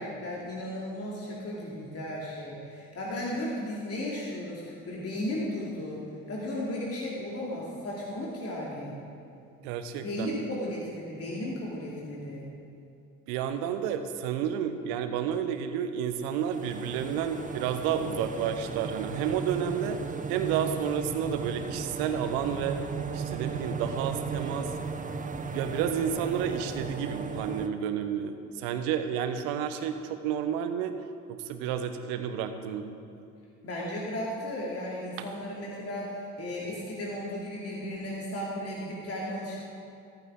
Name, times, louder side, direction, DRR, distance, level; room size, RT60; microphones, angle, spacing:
voice 1, 0.0-6.0 6.3-9.0 10.0-12.5 33.6-39.6, left 1 dB, 40° left, -4 dB, 2.6 m, -35 dB
voice 2, 9.6-10.4 13.3-20.0 20.3-22.8 23.1-24.7 25.5-30.9 31.3-32.9, right 8 dB, 65° right, 8 dB, 1.1 m, -31 dB
sound 1, 16.2-27.7, right 5 dB, 20° right, 0.9 m, -36 dB
14.5 x 14.0 x 3.8 m, 2.5 s
figure-of-eight pair, 55°, 39 cm